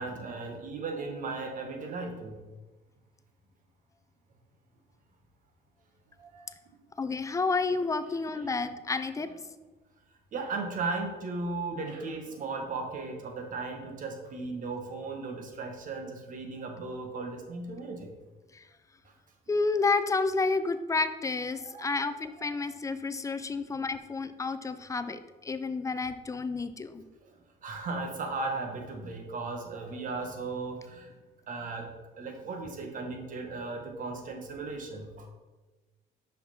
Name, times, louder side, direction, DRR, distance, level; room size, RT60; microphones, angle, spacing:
voice 1, 0.0-2.4 6.2-6.7 9.2-9.3 10.3-18.1 19.5-19.6 21.6-22.0 22.4-22.5 23.6-23.8 27.2-27.3 27.6-31.1 31.5-35.3, right 3 dB, 50° right, 3 dB, 1.3 m, -36 dB
voice 2, 7.0-9.3 18.5-18.6 19.5-27.0, left 4 dB, 20° left, 11 dB, 0.4 m, -30 dB
5.9 x 5.7 x 4.3 m, 1.2 s
cardioid pair, 110°, 17 cm